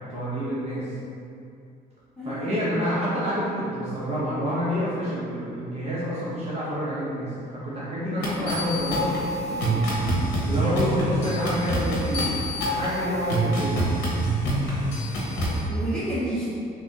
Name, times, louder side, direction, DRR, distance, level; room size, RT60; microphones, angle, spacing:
voice 1, 0.1-0.9 2.2-9.8 10.5-13.8, equal, 40° right, -9 dB, 0.9 m, -28 dB
voice 2, 2.2-2.5 8.1-8.5 10.5-11.0 15.7-16.5, equal, 5° left, -12 dB, 1.4 m, -31 dB
sound 1, 8.2-15.6, right 1 dB, 90° left, 0.9 m, -26 dB
3.3 x 2.7 x 3.5 m, 2.5 s
cardioid pair, 110°, 17 cm